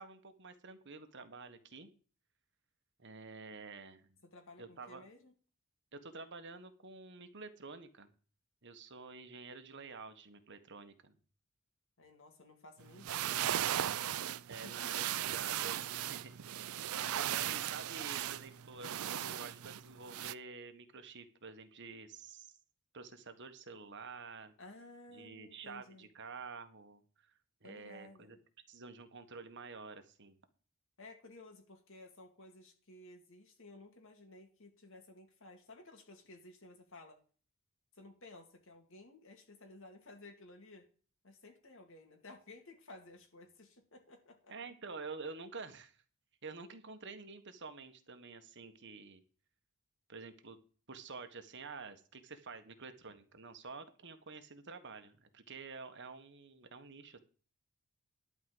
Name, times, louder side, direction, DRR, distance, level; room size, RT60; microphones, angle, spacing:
voice 1, 0.0-1.9 3.0-4.1 4.6-5.1 5.9-8.1 8.6-11.2 14.5-16.3 16.6-22.6 22.9-24.5 25.1-27.3 27.6-28.4 28.7-30.4 44.5-46.0 46.4-49.2 50.1-50.6 50.9-57.2, right 4 dB, 55° right, 8 dB, 1.6 m, -49 dB
voice 2, 4.3-5.3 12.0-13.9 14.6-15.1 24.6-26.1 27.6-28.3 31.0-37.2 37.9-40.9 41.2-44.5, left 2 dB, 60° left, 3 dB, 2.5 m, -55 dB
sound 1, 12.9-20.3, right 11 dB, 70° right, 0.5 m, -37 dB
12.0 x 4.9 x 7.9 m, 0.40 s
head